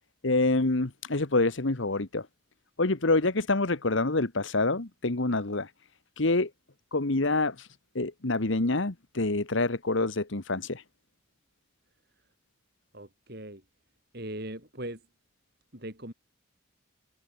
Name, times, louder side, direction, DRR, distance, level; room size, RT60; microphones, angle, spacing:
voice 1, 0.2-2.3 2.8-5.7 6.2-6.5 6.9-7.7 7.9-10.8, left 2 dB, 65° left, 1.4 m, -26 dB
voice 2, 12.9-13.6 14.1-15.1 15.7-16.1, right 1 dB, 50° right, 7.0 m, -39 dB
head